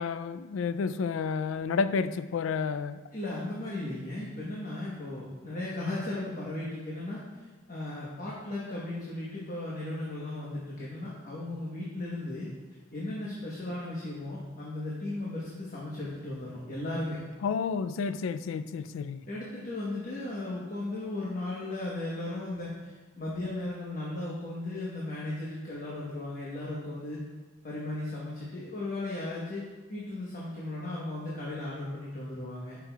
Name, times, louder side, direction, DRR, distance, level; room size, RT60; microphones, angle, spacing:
voice 1, 0.0-3.0 17.4-19.2, left 5 dB, 70° left, 13 dB, 0.3 m, -30 dB
voice 2, 3.1-7.4 7.7-12.5 12.9-17.2 19.3-27.3 27.6-29.6 29.9-32.8, left 2 dB, 45° left, -6 dB, 1.0 m, -36 dB
10.5 x 5.8 x 2.3 m, 1.3 s
head